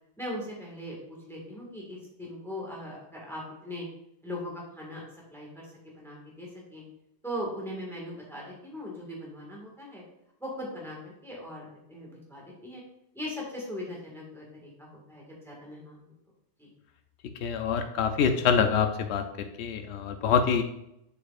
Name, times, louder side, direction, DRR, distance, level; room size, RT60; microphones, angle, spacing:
voice 1, 0.2-3.9 4.2-5.0 5.3-6.8 7.2-10.0 10.4-12.8 13.1-16.1 16.6-16.7, left 1 dB, ahead, -4 dB, 1.7 m, -39 dB
voice 2, 17.4-20.6, left 6 dB, 85° left, 6 dB, 0.8 m, -26 dB
7.0 x 6.7 x 2.5 m, 0.80 s
omnidirectional pair, 1.1 m